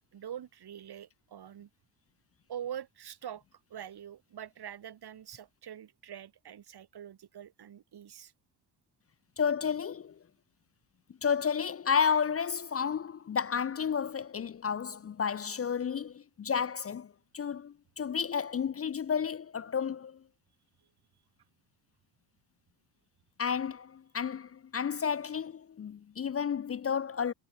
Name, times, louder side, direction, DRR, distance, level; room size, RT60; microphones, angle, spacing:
voice 1, 0.1-1.7 2.5-8.3, right 9 dB, 60° right, 2.9 m, -44 dB
voice 2, 9.4-10.2 11.2-20.2 23.4-27.3, left 7 dB, 35° left, 0.6 m, -31 dB
supercardioid pair, 65°, 43 cm